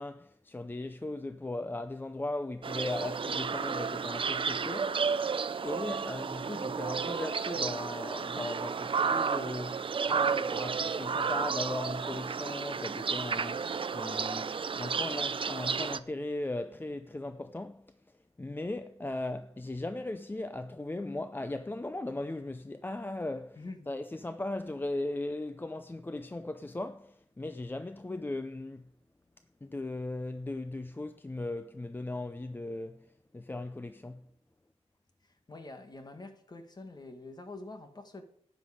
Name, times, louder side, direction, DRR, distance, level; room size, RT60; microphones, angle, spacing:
voice 1, 0.0-5.1 5.6-28.9 29.6-34.3, left 2 dB, 20° left, 0.5 m, -38 dB
sound 1, 2.6-16.0, right 5 dB, 50° right, 0.5 m, -32 dB
voice 2, 23.6-23.9 35.2-38.2, left 2 dB, 35° left, 1.6 m, -46 dB
12.5 x 9.4 x 4.9 m
wide cardioid pair, 95°, 11 cm